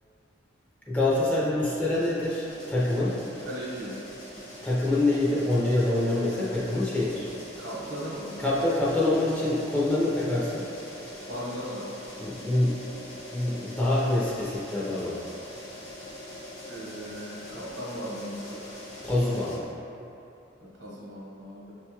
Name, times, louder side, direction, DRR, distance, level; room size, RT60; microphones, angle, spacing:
voice 1, 0.9-3.2 4.6-7.3 8.4-10.7 12.2-12.8 13.3-15.2 19.0-19.7, left 2 dB, 10° left, -8 dB, 0.5 m, -25 dB
sound 1, 1.6-19.6, left 1 dB, 65° left, 1.2 m, -43 dB
voice 2, 3.5-4.0 7.6-8.4 11.3-11.9 16.7-18.7 20.6-21.7, equal, 60° right, -6 dB, 1.0 m, -37 dB
6.3 x 2.9 x 2.2 m, 2.8 s
head